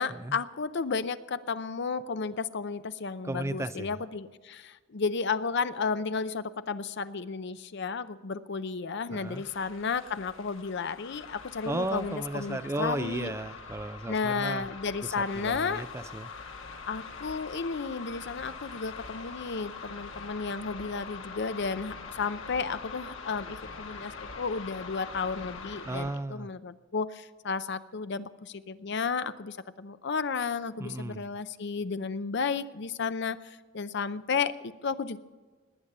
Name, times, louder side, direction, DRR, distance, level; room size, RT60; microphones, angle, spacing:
voice 1, 0.0-13.3 14.1-15.8 16.9-35.2, left 5 dB, 60° left, 13 dB, 0.6 m, -33 dB
voice 2, 3.2-3.9 9.1-9.4 11.6-14.7 15.0-16.3 25.8-26.5 30.8-31.3, right 2 dB, 15° right, 13 dB, 0.4 m, -35 dB
sound 1, 9.2-26.2, left 4 dB, 80° left, 1.5 m, -44 dB
20.0 x 8.8 x 6.7 m, 1.4 s
head